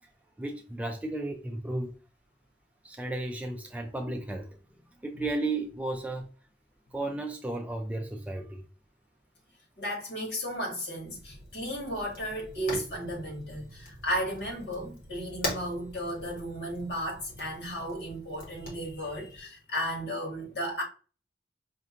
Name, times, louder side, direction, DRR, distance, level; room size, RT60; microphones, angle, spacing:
voice 1, 0.4-1.9 2.8-4.6 4.9-6.3 6.9-8.6, right 2 dB, 10° right, 0.3 m, -34 dB
voice 2, 9.8-20.8, equal, 65° left, 1.7 m, -34 dB
Fire, 11.0-19.4, left 1 dB, 45° left, 1.2 m, -42 dB
5.2 x 2.5 x 2.4 m
head